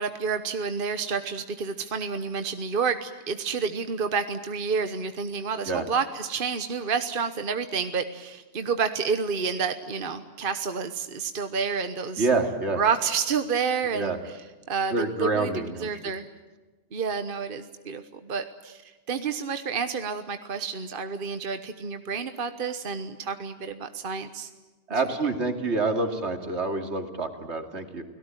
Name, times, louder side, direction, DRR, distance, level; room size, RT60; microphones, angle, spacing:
voice 1, 0.0-12.2 12.8-14.1 14.7-15.5 15.8-16.3 16.9-24.5 24.9-25.0, right 5 dB, 50° right, 9 dB, 1.3 m, -29 dB
voice 2, 12.2-12.8 13.9-14.2 14.9-15.9 24.9-28.1, right 3 dB, 80° right, 5 dB, 2.9 m, -27 dB
30.0 x 18.0 x 9.1 m, 1.2 s
omnidirectional pair, 1.1 m